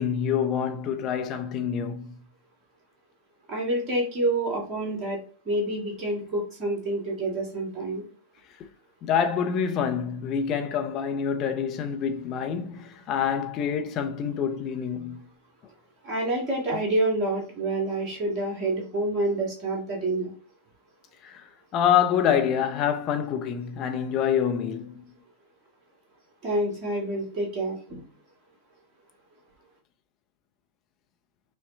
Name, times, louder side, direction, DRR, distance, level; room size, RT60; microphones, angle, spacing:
voice 1, 0.0-2.1 9.0-15.3 21.2-25.1, left 8 dB, 35° left, 0.6 m, -26 dB
voice 2, 3.5-5.2 5.4-8.1 16.0-20.3 26.4-28.0, right 1 dB, 35° right, 1.8 m, -28 dB
5.3 x 2.1 x 2.5 m
figure-of-eight pair, 90°, 0 cm